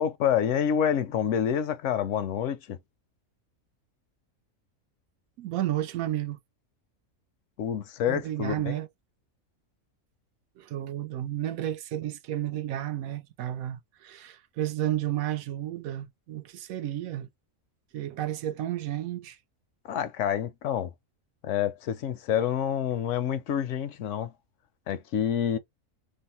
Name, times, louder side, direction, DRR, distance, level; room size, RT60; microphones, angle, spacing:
voice 1, 0.0-2.8 7.6-8.5 19.8-20.9 21.4-24.3 24.9-25.6, left 9 dB, 70° left, 0.8 m, -27 dB
voice 2, 5.4-6.4 8.1-8.9 10.6-17.3 17.9-19.4, right 12 dB, 85° right, 1.0 m, -32 dB
3.3 x 2.0 x 4.1 m
omnidirectional pair, 1.4 m